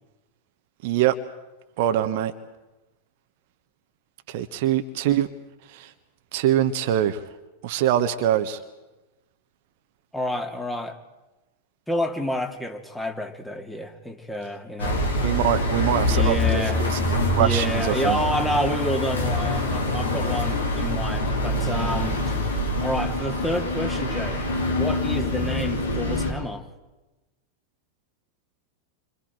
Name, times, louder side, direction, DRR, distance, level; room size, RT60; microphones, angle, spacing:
voice 1, 0.8-1.2 1.8-2.3 4.3-5.3 5.7-5.9 6.3-7.2 7.6-8.6 15.2-18.2, right 11 dB, 50° right, 8 dB, 1.4 m, -24 dB
voice 2, 10.1-11.0 11.9-15.0 16.1-16.8 17.3-22.3 22.8-24.4 24.7-26.7, equal, 5° left, 3 dB, 2.9 m, -29 dB
sound 1, 14.8-26.3, left 1 dB, 70° left, 4.6 m, -25 dB
29.5 x 26.0 x 4.6 m, 1.1 s
figure-of-eight pair, 90°, 0 cm